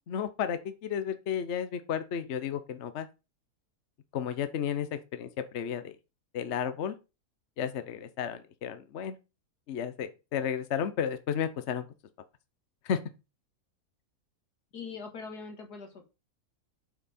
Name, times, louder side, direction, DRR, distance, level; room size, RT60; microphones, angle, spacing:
voice 1, 0.1-3.1 4.1-6.0 6.3-7.0 7.6-9.2 9.7-11.9 12.8-13.0, left 8 dB, 55° left, 1.0 m, -33 dB
voice 2, 14.7-16.1, left 5 dB, 85° left, 2.4 m, -42 dB
8.1 x 5.7 x 4.3 m
omnidirectional pair, 1.7 m